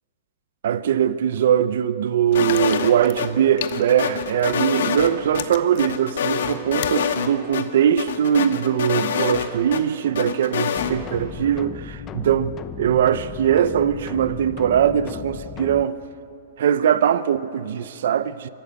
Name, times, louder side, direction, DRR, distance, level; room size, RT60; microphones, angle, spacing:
voice 1, 0.6-16.0 16.6-18.5, right 9 dB, 70° right, 0.6 m, -21 dB
sound 1, 2.3-3.3 3.6-5.4 5.8-7.3 7.5-7.6 8.0-9.8 10.1-10.9, left 8 dB, 80° left, 1.6 m, -25 dB
sound 2, 2.3-4.7 5.0-7.1 7.6-7.7, left 13 dB, 55° left, 0.9 m, -36 dB
sound 3, 10.8-15.8, left 8 dB, 25° left, 0.8 m, -36 dB
24.5 x 13.0 x 8.1 m
hypercardioid pair, 155°, 0 cm